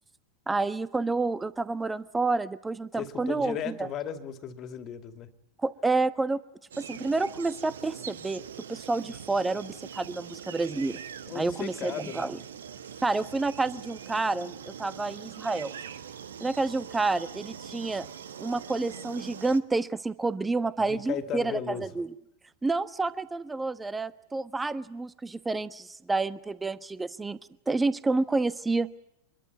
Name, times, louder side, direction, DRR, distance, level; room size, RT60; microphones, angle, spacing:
voice 1, 0.5-3.9 5.6-6.4 6.8-8.4 8.7-11.0 11.3-12.4 13.0-15.7 16.4-18.1 18.4-22.1 22.6-27.4 27.7-28.9, right 3 dB, 10° right, 16 dB, 1.1 m, -29 dB
voice 2, 2.9-5.3 11.3-12.3 20.9-21.9, left 8 dB, 35° left, 9 dB, 2.5 m, -36 dB
sound 1, 6.7-19.6, right 8 dB, 65° right, 1.4 m, -43 dB
25.0 x 22.5 x 9.5 m, 0.80 s
figure-of-eight pair, 90°, 0 cm